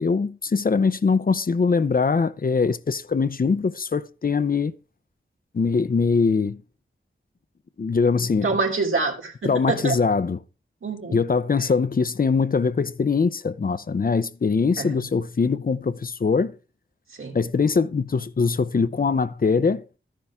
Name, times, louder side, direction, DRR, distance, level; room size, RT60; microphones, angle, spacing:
voice 1, 0.0-4.7 5.5-6.6 7.8-8.5 9.4-10.4 11.1-16.6 17.3-19.8, left 5 dB, 45° left, 0.6 m, -22 dB
voice 2, 8.4-10.0 10.8-11.2 14.8-15.0 17.2-17.4, right 4 dB, 85° right, 3.1 m, -26 dB
13.0 x 10.0 x 3.5 m
wide cardioid pair, 90°, 20 cm